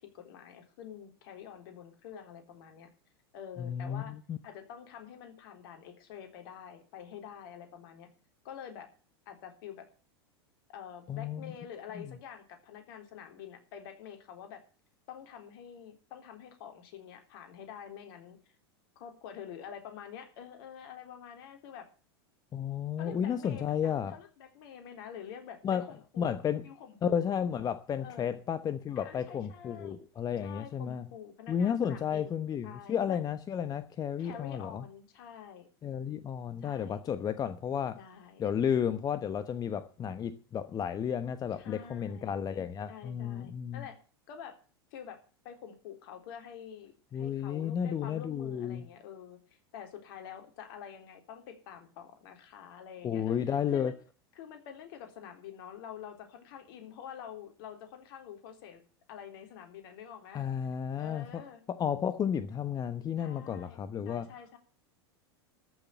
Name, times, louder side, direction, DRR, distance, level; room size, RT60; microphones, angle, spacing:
voice 1, 0.0-2.9 3.3-4.1 4.4-8.1 8.4-8.9 9.3-9.9 10.7-14.6 15.1-18.4 19.0-21.9 23.0-26.4 26.6-27.3 28.0-28.4 29.0-30.0 30.4-33.2 34.2-35.7 36.6-37.0 37.9-38.4 41.6-42.3 42.9-44.0 44.3-44.5 44.9-45.2 45.4-49.4 49.7-53.9 54.4-58.8 59.1-60.4 61.0-61.6 63.2-63.8 64.0-64.6, left 8 dB, 60° left, 3.8 m, -47 dB
voice 2, 3.6-4.4 11.1-11.5 12.0-12.1 22.5-24.1 25.6-25.9 26.2-26.6 27.0-31.1 31.5-34.8 35.8-38.0 38.4-43.8 47.1-48.8 53.0-53.9 60.3-61.4 61.7-64.3, left 8 dB, 30° left, 1.0 m, -32 dB
14.0 x 7.0 x 8.6 m
hypercardioid pair, 95°, 13 cm